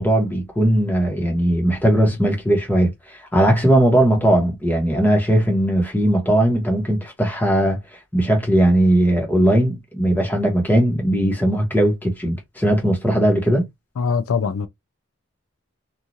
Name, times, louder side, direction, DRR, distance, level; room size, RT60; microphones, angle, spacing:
voice 1, 0.0-7.8 8.1-13.6, right 1 dB, 10° left, 0.9 m, -18 dB
voice 2, 14.0-14.7, left 5 dB, 80° left, 0.4 m, -22 dB
3.0 x 2.4 x 2.6 m
head